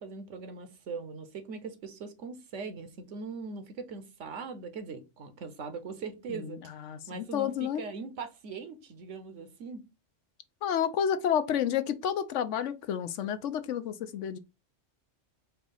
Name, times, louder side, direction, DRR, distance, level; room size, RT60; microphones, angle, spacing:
voice 1, 0.0-6.6 7.1-9.8, right 4 dB, 75° right, 1.2 m, -41 dB
voice 2, 6.3-7.8 10.6-14.4, left 9 dB, 75° left, 0.9 m, -30 dB
4.5 x 3.0 x 3.8 m
omnidirectional pair, 1.3 m